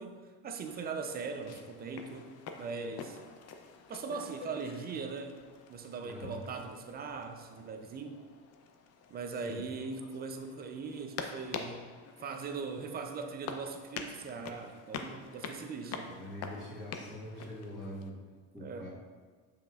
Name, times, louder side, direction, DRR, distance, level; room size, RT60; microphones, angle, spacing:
voice 1, 0.0-2.3 2.6-3.2 3.9-8.2 9.1-11.9 12.2-16.2 18.6-18.9, right 4 dB, 25° right, 6 dB, 0.5 m, -40 dB
sound 1, 0.6-18.1, left 5 dB, 45° left, 0.6 m, -47 dB
voice 2, 6.0-6.5 9.4-9.6 16.1-18.2 18.5-18.9, equal, ahead, -11 dB, 1.5 m, -44 dB
7.0 x 5.6 x 2.4 m, 1.5 s
supercardioid pair, 120°, 36 cm